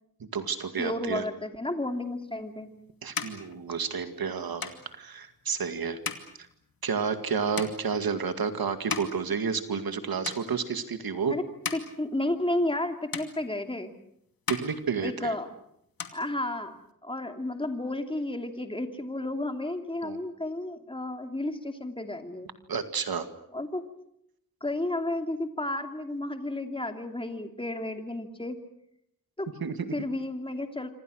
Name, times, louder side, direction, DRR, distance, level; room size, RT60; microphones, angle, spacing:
voice 1, 0.2-1.2 3.0-6.0 6.8-11.4 14.5-15.3 20.0-20.2 22.7-23.3 29.6-29.9, right 6 dB, 85° right, 9 dB, 2.2 m, -30 dB
voice 2, 0.8-2.7 11.3-11.4 11.7-13.9 15.0-15.5 16.1-16.7 17.0-22.5 23.5-23.8 24.6-28.6 29.4-29.5 29.9-30.9, left 1 dB, 15° left, 6 dB, 2.6 m, -32 dB
sound 1, 2.3-10.0 10.2-10.9 11.4-12.8 13.1-14.0 14.3-15.5 15.8-16.9, left 6 dB, 75° left, 2.5 m, -39 dB
26.5 x 26.5 x 6.4 m, 0.76 s
wide cardioid pair, 95°, 35 cm